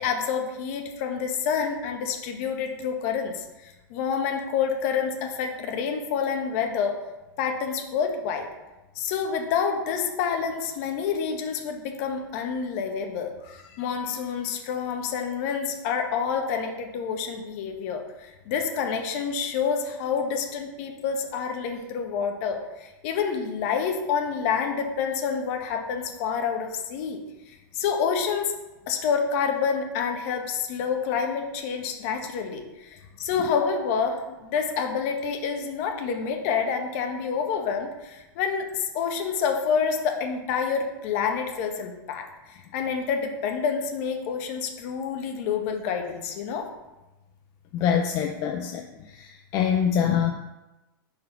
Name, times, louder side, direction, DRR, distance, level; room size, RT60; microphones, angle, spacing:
voice 1, 0.0-7.0 7.4-8.5 8.9-27.2 27.5-28.5 28.9-46.7, left 6 dB, 40° left, 4 dB, 1.0 m, -28 dB
voice 2, 47.7-48.8 49.2-50.3, left 8 dB, 25° left, 3 dB, 0.3 m, -24 dB
5.5 x 4.1 x 4.5 m, 1.0 s
supercardioid pair, 155°, 12 cm